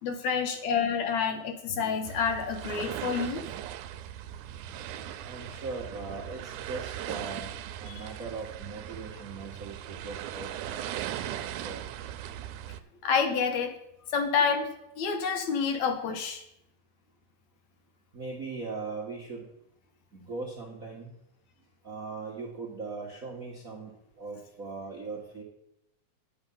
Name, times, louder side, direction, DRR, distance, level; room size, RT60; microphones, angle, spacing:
voice 1, 0.0-3.5 7.9-8.0 13.0-13.7 14.1-14.7 15.0-16.4, left 6 dB, 70° left, 6 dB, 2.1 m, -28 dB
sound 1, 2.0-12.8, right 11 dB, 80° right, 2.0 m, -39 dB
voice 2, 5.2-10.9 11.6-11.8 18.1-19.5 20.1-21.1 21.8-23.9 24.2-25.4, right 4 dB, 50° right, -2 dB, 1.0 m, -39 dB
9.7 x 8.0 x 5.5 m, 0.80 s
omnidirectional pair, 3.6 m